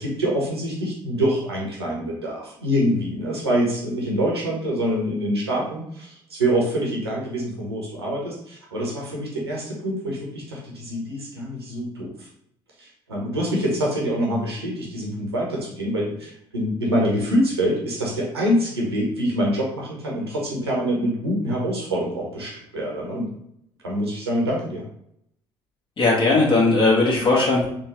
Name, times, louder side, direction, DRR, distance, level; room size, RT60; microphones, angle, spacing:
voice 1, 0.0-12.3 12.8-23.3 23.8-24.8, equal, 90° right, -3 dB, 0.8 m, -25 dB
voice 2, 26.0-27.7, left 3 dB, 40° left, -3 dB, 1.4 m, -18 dB
3.7 x 2.3 x 3.0 m, 0.71 s
figure-of-eight pair, 55°, 13 cm